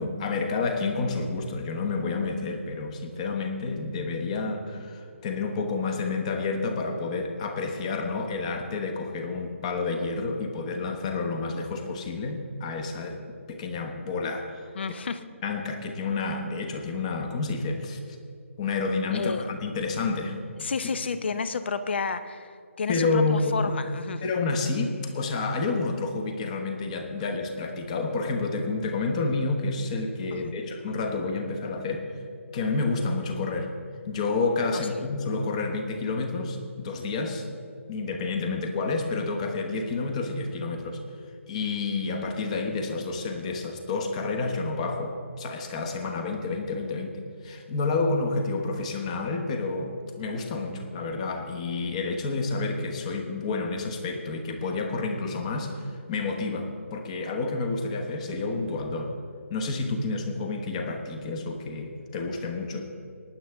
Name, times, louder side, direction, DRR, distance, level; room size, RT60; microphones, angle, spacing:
voice 1, 0.0-13.2 13.5-14.7 15.4-18.0 18.6-20.7 22.9-23.7 24.2-32.1 32.5-33.7 34.1-37.5 37.9-41.0 41.5-59.1 59.5-62.9, left 3 dB, 30° left, 5 dB, 1.1 m, -29 dB
voice 2, 14.7-15.2 19.1-19.5 20.6-24.2 30.3-30.5 34.7-34.9, left 5 dB, 50° left, 12 dB, 0.7 m, -31 dB
19.0 x 9.7 x 3.5 m, 2.3 s
figure-of-eight pair, 155°, 8 cm